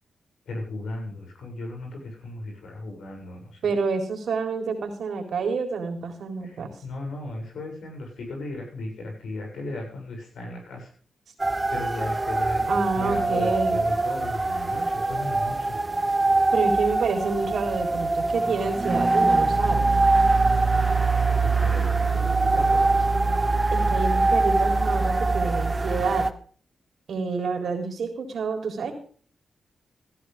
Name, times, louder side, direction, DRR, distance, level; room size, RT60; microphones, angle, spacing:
voice 1, 0.5-3.7 6.4-10.9 11.7-15.7 21.4-23.1, left 2 dB, 85° left, 1 dB, 7.5 m, -36 dB
voice 2, 3.6-6.7 12.7-13.8 16.5-19.9 23.7-26.3 27.1-28.9, right 4 dB, 75° right, 4 dB, 3.9 m, -28 dB
sound 1, 11.4-26.3, right 3 dB, 25° right, 1.2 m, -23 dB
16.0 x 13.5 x 3.7 m, 0.43 s
cardioid pair, 70°, 0 cm